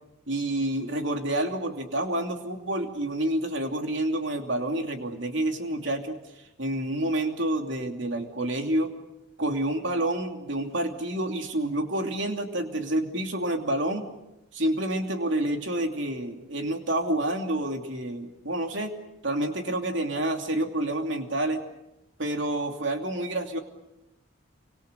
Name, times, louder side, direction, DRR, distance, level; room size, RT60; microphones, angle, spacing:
voice 1, 0.3-6.2 6.6-8.9 9.4-14.1 14.5-19.0 19.2-21.6 22.2-23.6, right 1 dB, 65° right, 4 dB, 2.8 m, -28 dB
28.5 x 25.5 x 6.8 m, 0.90 s
head